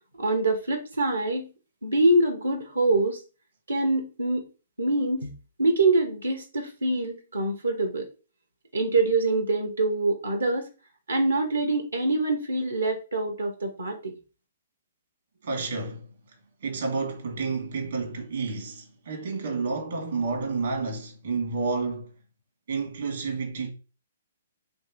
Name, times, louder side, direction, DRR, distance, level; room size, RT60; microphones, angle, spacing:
voice 1, 0.2-1.5 1.8-3.2 3.7-4.5 4.8-5.3 5.6-8.1 8.7-10.7 11.1-14.1, right 2 dB, 75° right, 1.1 m, -25 dB
voice 2, 15.4-16.1 16.6-22.1 22.7-23.7, right 4 dB, 60° right, 1.6 m, -30 dB
3.4 x 3.3 x 4.5 m
figure-of-eight pair, 120°, 0 cm